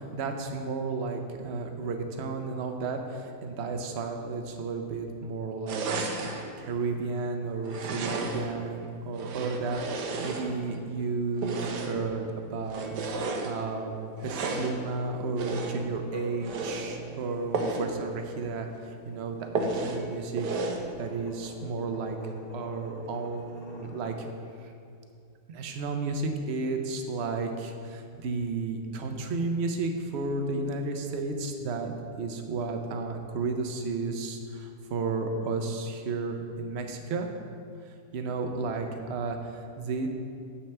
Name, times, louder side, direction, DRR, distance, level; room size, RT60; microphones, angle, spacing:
voice 1, 0.0-12.2 12.5-13.9 14.2-18.7 19.1-20.5 21.0-24.3 24.6-24.7 25.5-37.3 37.9-40.1, right 3 dB, 55° right, 5 dB, 0.8 m, -33 dB
sound 1, 5.7-6.5 7.6-8.6 9.1-10.8 11.4-12.1 12.7-13.5 14.2-14.8 15.4-15.9 16.4-16.9 17.5-17.9 18.3-18.4 18.7-18.8 19.5-20.0 20.4-20.9, right 3 dB, 85° right, 1.4 m, -32 dB
sound 2, 16.1-24.2, equal, 75° left, 2.4 m, -47 dB
9.9 x 7.3 x 3.3 m, 2.4 s
omnidirectional pair, 1.7 m